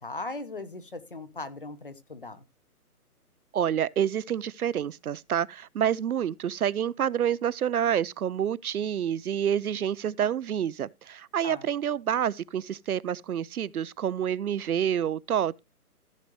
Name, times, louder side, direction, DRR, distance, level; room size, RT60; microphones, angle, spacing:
voice 1, 0.0-2.4 11.4-11.7, left 2 dB, 35° left, 0.8 m, -38 dB
voice 2, 3.5-15.6, right 9 dB, 70° right, 0.5 m, -28 dB
14.5 x 6.5 x 3.1 m
hypercardioid pair, 180°, 46 cm